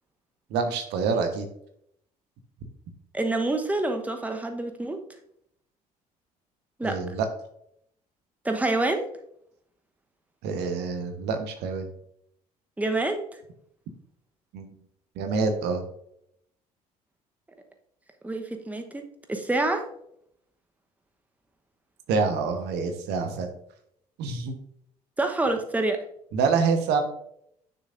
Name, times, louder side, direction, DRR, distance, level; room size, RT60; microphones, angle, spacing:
voice 1, 0.5-1.5 6.8-7.3 10.4-11.9 14.5-14.7 15.2-15.8 22.1-23.5 24.2-24.5 26.3-27.0, right 5 dB, 60° right, 6 dB, 1.2 m, -26 dB
voice 2, 3.1-5.0 6.8-7.0 8.4-9.1 12.8-13.3 18.2-19.8 25.2-26.0, right 2 dB, 5° right, 5 dB, 1.0 m, -27 dB
10.0 x 6.5 x 2.6 m, 0.71 s
figure-of-eight pair, 50°, 20 cm